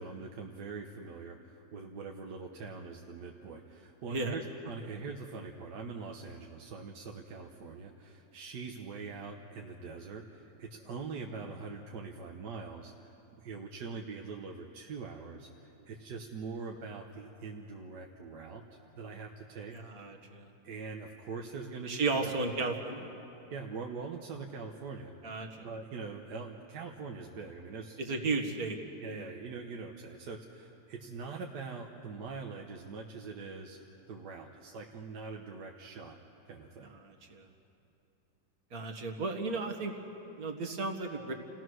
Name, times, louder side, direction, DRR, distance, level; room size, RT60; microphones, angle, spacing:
voice 1, 0.0-18.6 19.0-19.8 20.6-22.3 23.5-25.1 25.6-28.2 29.0-33.8 34.1-36.2 36.5-36.9, right 4 dB, 75° right, 1 dB, 1.7 m, -43 dB
voice 2, 19.7-20.5 21.9-23.1 25.2-25.7 28.0-28.8 29.0-29.3 37.0-37.5 38.7-39.9 40.4-41.3, right 3 dB, 60° right, 4 dB, 2.1 m, -34 dB
30.0 x 17.0 x 6.3 m, 2.9 s
omnidirectional pair, 1.8 m